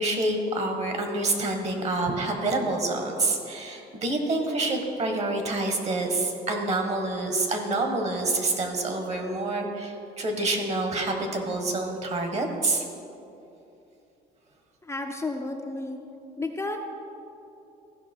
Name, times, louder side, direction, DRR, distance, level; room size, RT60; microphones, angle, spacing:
voice 1, 0.0-12.8, right 2 dB, 40° right, 4 dB, 1.5 m, -27 dB
voice 2, 14.8-16.1 16.4-16.8, left 2 dB, 15° left, 2 dB, 0.6 m, -32 dB
15.0 x 5.6 x 4.5 m, 2.9 s
cardioid pair, 110°, 17 cm